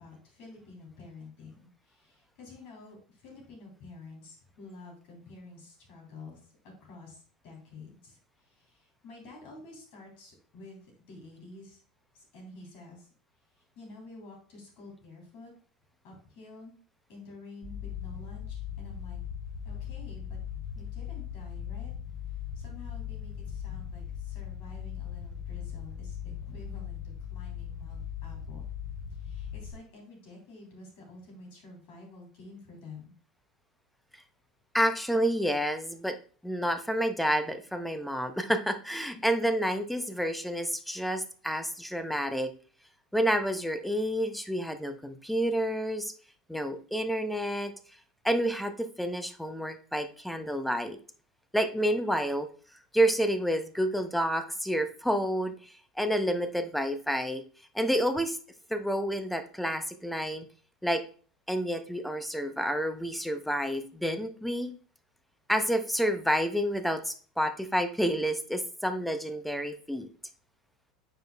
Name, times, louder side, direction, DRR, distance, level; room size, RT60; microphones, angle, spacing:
voice 1, 0.0-6.4 6.8-10.8 11.1-11.8 12.1-13.1 13.7-15.5 16.0-16.7 17.1-19.2 19.6-20.4 20.7-21.9 22.5-26.2 26.4-27.0 27.3-28.6 29.2-33.1, left 3 dB, 45° left, 0 dB, 3.3 m, -49 dB
sound 1, 17.6-29.7, left 8 dB, 30° left, 3.1 m, -39 dB
voice 2, 34.7-36.2 36.4-42.5 43.1-46.1 46.5-47.7 48.2-51.0 51.5-52.5 52.9-57.4 57.7-58.4 58.7-60.5 60.8-61.0 61.5-64.7 65.5-70.1, equal, ahead, 9 dB, 0.6 m, -29 dB
9.0 x 5.4 x 2.2 m, 0.42 s
figure-of-eight pair, 80°, 4 cm